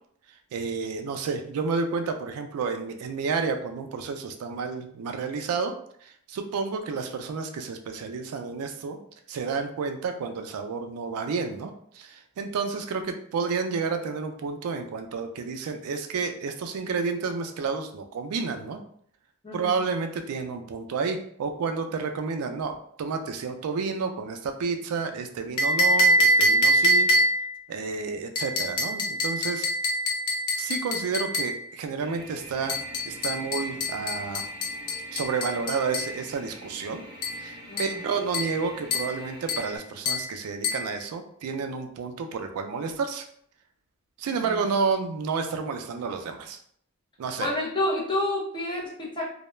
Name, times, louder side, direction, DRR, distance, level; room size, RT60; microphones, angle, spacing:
voice 1, 0.5-5.7 6.0-9.0 9.3-18.8 19.5-27.1 27.7-29.7 30.6-32.8 33.0-34.4 35.1-37.0 37.4-43.3 44.2-46.6 47.2-47.5, right 5 dB, 80° right, 6 dB, 0.3 m, -30 dB
sound 1, 25.6-27.5 28.4-31.6 32.7-36.2 37.2-37.4 37.8-38.0 38.3-38.6 38.9-39.2 39.5-39.7 40.1-40.3 40.6-40.9, equal, 85° left, 0.5 m, -25 dB
sound 2, 32.0-39.8, right 1 dB, 25° right, 0.5 m, -45 dB
voice 2, 37.7-38.0 44.3-44.6 47.4-49.3, left 1 dB, 20° left, -4 dB, 0.6 m, -29 dB
2.2 x 2.0 x 3.0 m, 0.63 s
head